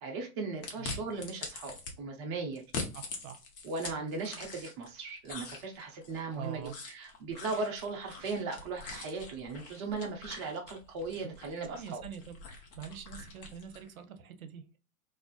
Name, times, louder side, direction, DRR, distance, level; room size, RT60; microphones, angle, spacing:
voice 1, 0.0-2.6 3.6-12.0, right 3 dB, 20° right, 0.3 m, -38 dB
sound 1, 0.6-1.9 2.6-4.9 5.2-13.9, left 4 dB, 40° left, 0.9 m, -44 dB
voice 2, 2.9-3.4 6.3-6.7 11.2-11.3 11.7-12.4 12.7-14.8, right 8 dB, 70° right, 0.7 m, -44 dB
2.4 x 2.3 x 2.3 m
figure-of-eight pair, 105°, 44 cm